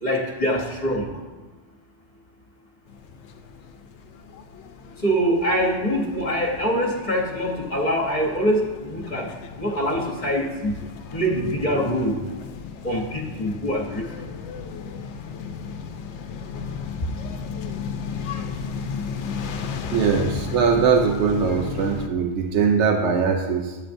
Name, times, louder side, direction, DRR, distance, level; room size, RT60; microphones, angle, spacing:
voice 1, 0.0-1.1 5.0-9.3 9.6-10.7 11.1-12.2 12.8-14.1, equal, 45° left, -2 dB, 1.1 m, -24 dB
sound 1, 2.9-22.1, left 5 dB, 85° left, 0.9 m, -35 dB
voice 2, 19.9-23.8, right 6 dB, 90° right, 3 dB, 0.9 m, -21 dB
8.8 x 8.7 x 2.6 m, 1.3 s
omnidirectional pair, 1.1 m